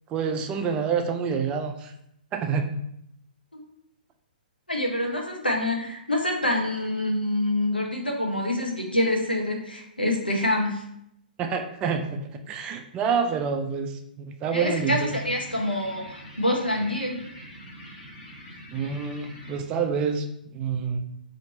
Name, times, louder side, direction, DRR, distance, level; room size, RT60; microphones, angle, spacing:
voice 1, 0.1-1.9 2.3-2.7 11.4-12.2 12.5-15.2 18.7-21.0, right 6 dB, 20° right, 5 dB, 0.3 m, -27 dB
voice 2, 4.7-10.8 14.5-17.2, left 1 dB, 85° left, 0 dB, 0.8 m, -26 dB
sound 1, 14.6-19.6, equal, 30° left, 1.2 m, -44 dB
2.9 x 2.8 x 4.2 m, 0.76 s
figure-of-eight pair, 120°, 5 cm